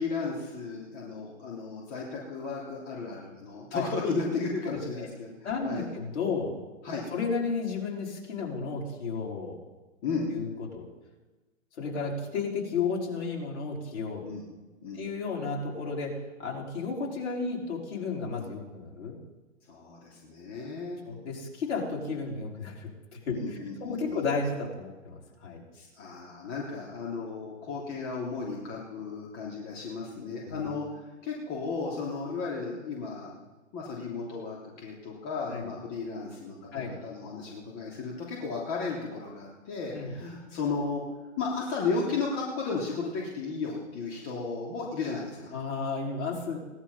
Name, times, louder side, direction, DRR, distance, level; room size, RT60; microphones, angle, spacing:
voice 1, 0.0-5.3 5.6-5.9 6.8-7.0 10.0-10.2 14.2-14.4 14.8-15.0 19.7-21.0 23.3-24.2 25.7-33.3 33.7-41.0 41.4-45.5, left 4 dB, 30° left, -3 dB, 3.1 m, -34 dB
voice 2, 4.7-5.1 5.4-6.6 7.1-9.6 10.3-10.9 11.8-14.2 14.9-19.2 21.1-22.9 23.3-25.6 30.5-30.7 35.5-35.7 36.7-36.9 39.9-40.1 45.5-46.6, left 4 dB, 55° left, -3 dB, 5.2 m, -33 dB
18.0 x 11.0 x 5.5 m, 1.2 s
hypercardioid pair, 130°, 40 cm